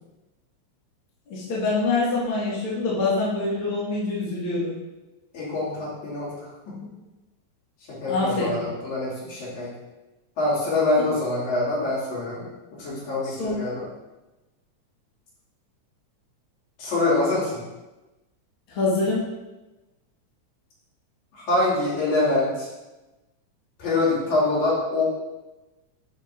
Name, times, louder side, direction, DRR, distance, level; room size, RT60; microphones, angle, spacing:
voice 1, 1.3-4.7 8.1-8.6 13.2-13.6 18.7-19.3, left 3 dB, 50° left, -8 dB, 2.3 m, -25 dB
voice 2, 5.3-6.9 7.9-9.7 10.4-13.8 16.8-17.6 21.4-22.7 23.8-25.0, left 2 dB, 75° left, -9 dB, 3.8 m, -25 dB
10.5 x 5.2 x 2.6 m, 1.1 s
omnidirectional pair, 3.4 m